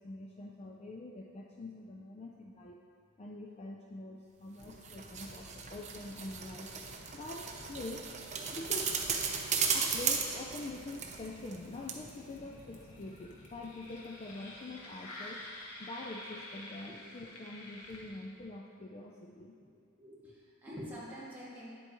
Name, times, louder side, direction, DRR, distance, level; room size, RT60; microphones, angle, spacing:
voice 1, 0.0-2.8 3.2-6.7 7.1-9.0 9.7-19.6, left 2 dB, 30° left, 0 dB, 0.4 m, -45 dB
sound 1, 4.6-18.5, left 1 dB, 90° left, 1.2 m, -51 dB
sound 2, 4.6-11.6 11.9-12.0, right 6 dB, 30° right, 0.6 m, -35 dB
voice 2, 19.9-21.7, equal, 10° right, -9 dB, 2.0 m, -46 dB
9.8 x 7.9 x 3.0 m, 2.2 s
head